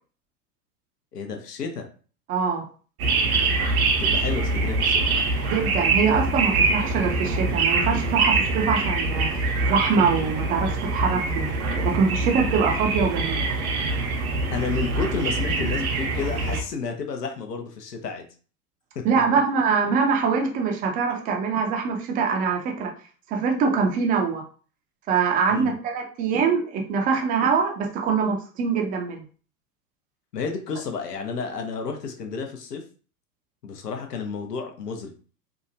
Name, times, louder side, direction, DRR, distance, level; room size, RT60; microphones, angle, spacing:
voice 1, 1.1-1.9 4.0-5.2 14.5-18.3 18.9-19.0 25.5-25.8 30.3-32.8 33.6-35.1, left 5 dB, 85° left, 4 dB, 0.7 m, -31 dB
voice 2, 2.3-2.7 5.5-9.3 9.6-11.5 11.8-13.4 19.0-22.9 23.3-24.4 25.1-29.2, right 5 dB, 20° right, 2 dB, 0.4 m, -23 dB
sound 1, 3.0-16.6, right 3 dB, 70° right, 0.7 m, -24 dB
2.8 x 2.2 x 2.7 m, 0.40 s
hypercardioid pair, 100°, 46 cm